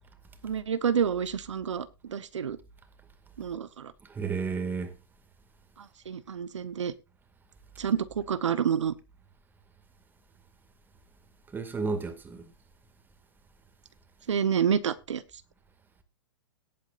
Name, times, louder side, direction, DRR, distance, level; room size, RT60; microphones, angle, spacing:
voice 1, 0.4-2.6 3.4-3.9 5.8-6.9 7.8-8.9 14.3-15.2, right 7 dB, 90° right, 1.0 m, -28 dB
voice 2, 4.1-5.0 11.5-12.5, right 4 dB, 15° right, 2.1 m, -32 dB
18.0 x 8.4 x 2.5 m
hypercardioid pair, 130°, 15 cm